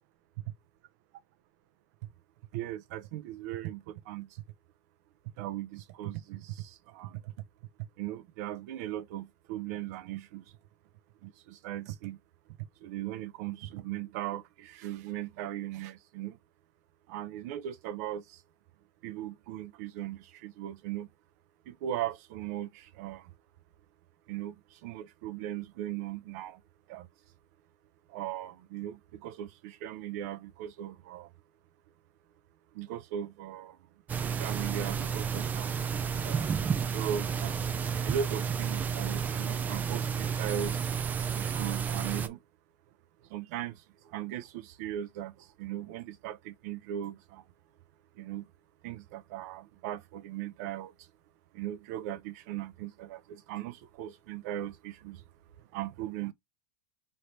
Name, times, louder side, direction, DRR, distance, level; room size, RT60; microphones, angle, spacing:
voice 1, 2.5-4.4 5.4-7.3 8.0-10.4 11.2-12.2 12.8-16.4 17.1-18.4 19.0-21.1 21.7-23.3 24.3-26.6 26.9-27.1 28.1-31.3 32.7-33.8 34.2-35.7 36.2-37.7 38.0-40.8 41.3-42.4 43.2-47.4 48.2-48.5 48.8-51.1 51.5-55.2 55.6-56.3, right 11 dB, 65° right, 0.6 m, -38 dB
sound 1, 34.1-42.3, right 7 dB, 20° right, 0.4 m, -31 dB
3.2 x 2.7 x 4.4 m
supercardioid pair, 150°, 9 cm